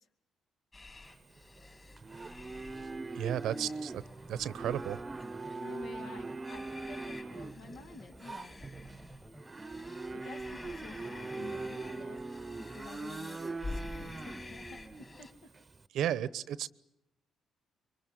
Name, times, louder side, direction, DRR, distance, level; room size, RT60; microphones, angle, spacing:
sound 1, 0.7-15.3, left 2 dB, 30° left, 5.0 m, -49 dB
Livestock farm animals working animals, 1.1-15.8, right 3 dB, 25° right, 0.9 m, -42 dB
voice 1, 3.1-4.0 4.3-5.0 15.9-16.7, right 10 dB, 80° right, 17 dB, 0.9 m, -33 dB
sound 2, 4.6-11.7, right 1 dB, ahead, 1.4 m, -55 dB
voice 2, 5.6-8.7 10.1-12.4 12.7-14.8 15.2-15.3, left 4 dB, 75° left, 6 dB, 2.6 m, -50 dB
25.5 x 23.5 x 8.4 m, 0.87 s
cardioid pair, 90°, 0 cm